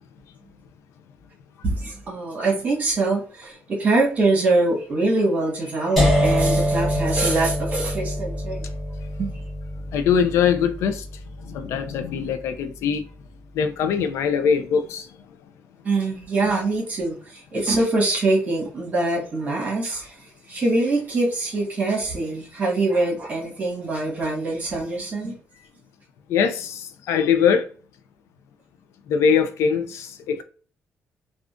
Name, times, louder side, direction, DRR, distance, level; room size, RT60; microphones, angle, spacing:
voice 1, 1.6-8.6 9.2-9.4 15.8-25.3, right 2 dB, 35° right, 1.3 m, -24 dB
sound 1, 6.0-11.9, equal, ahead, 1.4 m, -24 dB
voice 2, 9.9-11.1 11.4-13.1 13.5-15.1 26.3-27.7 29.1-30.4, left 7 dB, 80° left, 0.4 m, -22 dB
3.5 x 2.4 x 2.4 m
cardioid pair, 150°, 5 cm